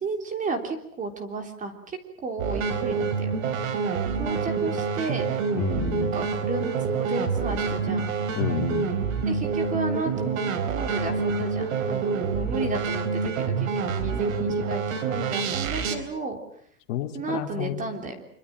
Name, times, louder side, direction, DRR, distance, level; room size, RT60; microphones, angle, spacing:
voice 1, 0.0-3.3 4.2-5.3 6.0-8.1 9.2-16.4 17.1-18.2, right 3 dB, 15° right, 5 dB, 3.4 m, -33 dB
sound 1, 2.4-16.0, right 5 dB, 60° right, 4.3 m, -27 dB
voice 2, 5.5-6.1 8.3-8.9 16.9-17.8, left 9 dB, 50° left, 6 dB, 2.9 m, -29 dB
26.0 x 24.0 x 7.7 m, 0.63 s
hypercardioid pair, 145°, 45 cm